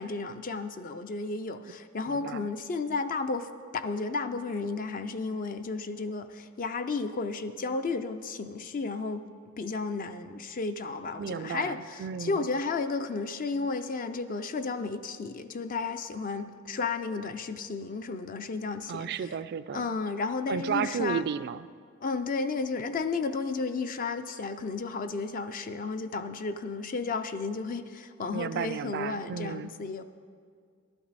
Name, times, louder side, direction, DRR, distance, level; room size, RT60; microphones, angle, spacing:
voice 1, 0.0-9.3 9.6-19.3 19.7-21.2 22.0-30.0, left 4 dB, 40° left, 9 dB, 0.4 m, -33 dB
voice 2, 2.1-2.4 11.2-12.5 18.9-19.9 20.5-21.7 28.3-29.7, right 7 dB, 50° right, 15 dB, 0.3 m, -33 dB
12.0 x 11.5 x 4.1 m, 2.1 s
head